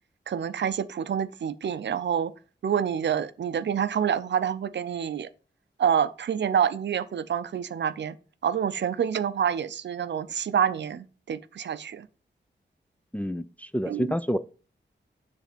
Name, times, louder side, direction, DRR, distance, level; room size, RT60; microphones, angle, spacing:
voice 1, 0.3-2.3 2.6-5.3 5.8-8.2 8.4-12.1 13.8-14.1, right 8 dB, 75° right, 0.5 m, -27 dB
voice 2, 13.1-14.4, equal, 10° left, 0.3 m, -28 dB
7.4 x 3.3 x 5.1 m
wide cardioid pair, 120°, 19 cm